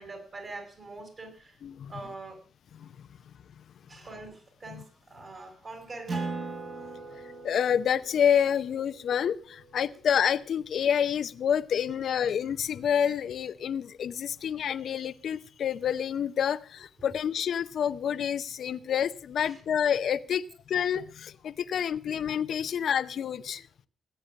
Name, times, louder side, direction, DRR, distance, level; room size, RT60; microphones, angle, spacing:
voice 1, 0.0-1.6 1.9-2.4 3.9-6.3 19.4-19.6, right 3 dB, 45° right, 6 dB, 5.9 m, -43 dB
voice 2, 1.6-1.9 2.8-2.9 7.4-23.7, left 8 dB, 65° left, 12 dB, 0.7 m, -28 dB
Acoustic guitar, 6.1-11.0, right 3 dB, 60° right, 6.0 m, -40 dB
19.0 x 8.9 x 6.4 m, 0.40 s
hypercardioid pair, 45°, 0 cm